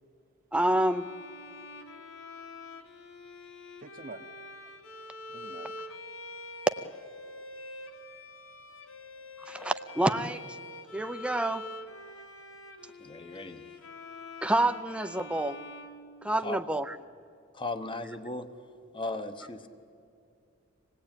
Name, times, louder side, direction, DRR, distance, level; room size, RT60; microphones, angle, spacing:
voice 1, 0.5-1.1 9.5-10.4 10.9-11.7 14.4-15.6 16.2-16.9, right 1 dB, 5° right, 8 dB, 0.5 m, -28 dB
Bowed string instrument, 0.8-16.7, left 2 dB, 65° left, 1.6 m, -45 dB
voice 2, 3.8-4.3 5.3-5.7, right 2 dB, 40° right, 7 dB, 0.8 m, -45 dB
voice 3, 13.0-13.7 16.4-16.6 17.5-18.5 18.9-19.7, left 2 dB, 25° left, 9 dB, 1.0 m, -36 dB
25.5 x 18.0 x 9.0 m, 2.4 s
head